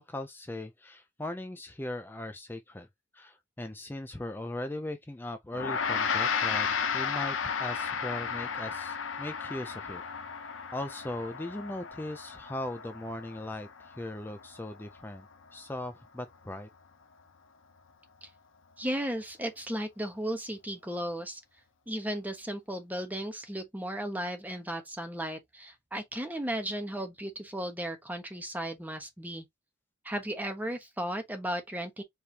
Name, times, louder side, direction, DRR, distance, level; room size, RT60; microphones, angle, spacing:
voice 1, 0.0-2.9 3.1-10.0 10.7-15.3 15.5-16.7, left 1 dB, 10° left, 0.4 m, -39 dB
Gong, 5.5-15.1, left 6 dB, 70° left, 0.7 m, -34 dB
voice 2, 18.8-21.4 21.9-29.5 30.0-32.0, right 1 dB, 10° right, 1.1 m, -35 dB
4.8 x 3.3 x 2.8 m
head